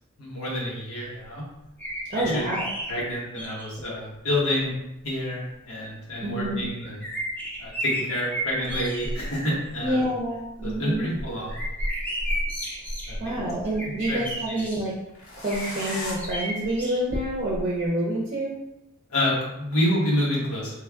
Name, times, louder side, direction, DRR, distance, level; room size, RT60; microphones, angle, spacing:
voice 1, 0.2-1.4 2.1-2.5 2.9-4.7 5.0-7.0 7.6-10.0 10.6-11.6 13.1-13.2 14.1-14.2 14.5-14.6 19.1-20.7, left 1 dB, 90° left, -5 dB, 1.3 m, -28 dB
sound 1, 1.8-3.8 4.7-4.8 6.4-9.3 9.6-10.0 10.4-14.8 15.5-17.6 17.9-18.0, equal, 10° left, 0.6 m, -32 dB
voice 2, 2.1-2.7 6.2-6.6 9.8-11.1 13.2-14.9 15.4-18.6, right 1 dB, 35° right, -4 dB, 0.7 m, -27 dB
sound 2, 9.9-10.0 11.3-12.3 15.1-16.1, left 2 dB, 70° left, 1.0 m, -37 dB
3.3 x 2.3 x 3.5 m, 0.88 s
head